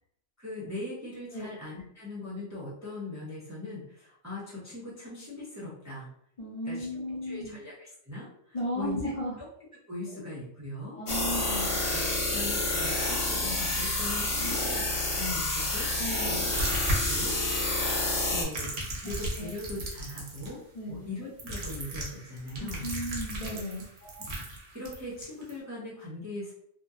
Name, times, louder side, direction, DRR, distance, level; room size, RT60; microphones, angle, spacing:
voice 1, 0.4-6.1 6.6-9.1 9.4-9.5 9.9-11.0 11.9-17.4 18.3-18.7 19.0-20.6 20.9-22.9 24.0-24.3 24.7-26.5, left 2 dB, 20° right, -8 dB, 0.6 m, -40 dB
voice 2, 6.4-7.6 8.5-9.3 10.1-10.2 10.9-11.8 14.4-14.6 16.0-16.5 19.4-19.5 20.7-21.1 22.6-23.8, equal, 40° left, -7 dB, 0.7 m, -35 dB
sound 1, 11.1-18.4, left 2 dB, 70° left, 1.0 m, -29 dB
sound 2, 16.5-17.8 18.3-20.5 21.4-25.5, right 1 dB, 70° right, 1.0 m, -35 dB
2.7 x 2.1 x 2.3 m, 0.68 s
omnidirectional pair, 1.2 m